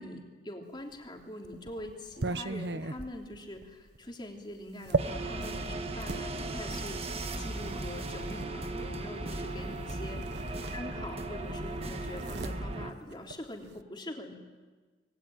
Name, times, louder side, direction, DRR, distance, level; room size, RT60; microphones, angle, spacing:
voice 1, 0.0-10.2 10.7-14.3, left 1 dB, 25° left, 1 dB, 3.4 m, -43 dB
sound 1, 0.9-6.3 7.2-8.5 9.7-9.9 10.2-11.3 11.6-13.8, right 3 dB, 70° right, 1.0 m, -37 dB
sound 2, 5.0-12.9, right 2 dB, 35° right, 1.4 m, -37 dB
26.5 x 21.0 x 9.4 m, 1.4 s
head